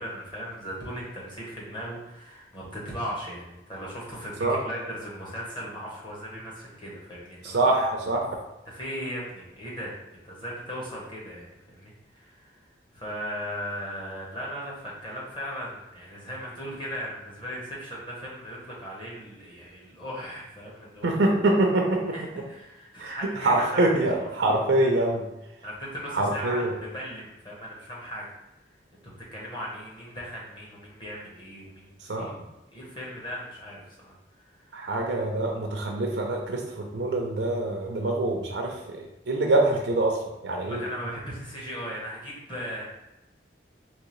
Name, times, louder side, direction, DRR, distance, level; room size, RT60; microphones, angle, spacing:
voice 1, 0.0-7.6 8.7-21.2 22.1-23.9 24.4-24.6 24.9-25.1 25.6-28.3 29.3-32.3 32.7-34.7 40.6-42.8, equal, 25° left, -5 dB, 1.0 m, -38 dB
voice 2, 7.4-8.4 21.0-22.0 23.0-25.2 26.1-26.7 32.0-32.3 34.7-40.8, right 2 dB, 75° right, 0 dB, 0.5 m, -25 dB
3.7 x 2.9 x 3.1 m, 0.92 s
head